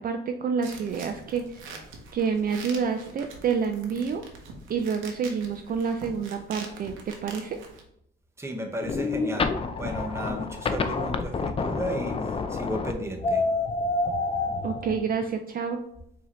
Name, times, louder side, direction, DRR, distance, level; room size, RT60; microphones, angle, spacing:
voice 1, 0.0-1.8 2.1-4.2 4.7-7.6 14.6-15.8, right 6 dB, 45° right, 5 dB, 0.4 m, -28 dB
sound 1, 0.6-7.8, right 3 dB, 90° right, 0.8 m, -44 dB
voice 2, 8.4-9.5 9.8-13.4, right 1 dB, 15° right, 2 dB, 0.7 m, -34 dB
sound 2, 8.8-15.0, left 3 dB, 30° left, 0.4 m, -28 dB
4.7 x 2.8 x 3.1 m, 0.74 s
cardioid pair, 90°, 20 cm